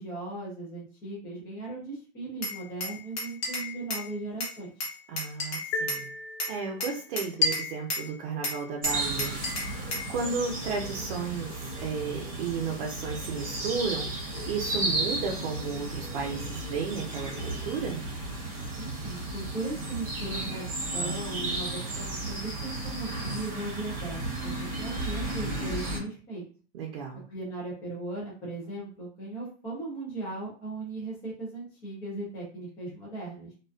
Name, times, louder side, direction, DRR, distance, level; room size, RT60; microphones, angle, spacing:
voice 1, 0.0-4.7 18.8-26.4 27.3-33.5, right 2 dB, 10° left, -5 dB, 0.3 m, -38 dB
Glass, 2.4-4.1 4.4-6.0 6.4-8.1 8.4-10.1, left 3 dB, 50° left, 1.0 m, -32 dB
voice 2, 5.1-6.1 6.5-9.7 10.1-18.0 26.7-27.2, right 5 dB, 60° right, -1 dB, 0.6 m, -34 dB
sound 1, 5.7-7.2, left 2 dB, 75° left, 0.5 m, -36 dB
sound 2, 8.8-26.0, right 2 dB, 25° right, 0.8 m, -34 dB
2.4 x 2.3 x 2.2 m, 0.39 s
supercardioid pair, 160°, 31 cm